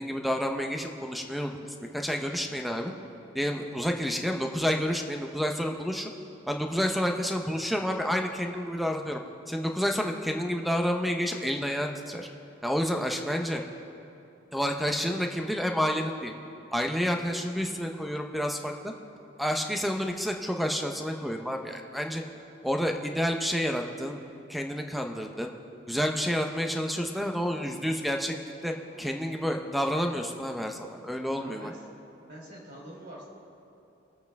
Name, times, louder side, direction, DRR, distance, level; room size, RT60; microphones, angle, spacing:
voice 1, 0.0-1.6 1.9-2.9 3.3-6.1 6.5-9.2 9.5-12.3 12.6-13.6 14.5-16.3 16.7-18.9 19.4-22.2 22.6-24.2 24.5-25.5 25.9-28.3 28.6-31.7, equal, ahead, 3 dB, 0.7 m, -29 dB
voice 2, 31.3-31.8 32.2-33.2, right 1 dB, 55° right, -3 dB, 3.3 m, -45 dB
22.5 x 8.1 x 3.5 m, 2.7 s
head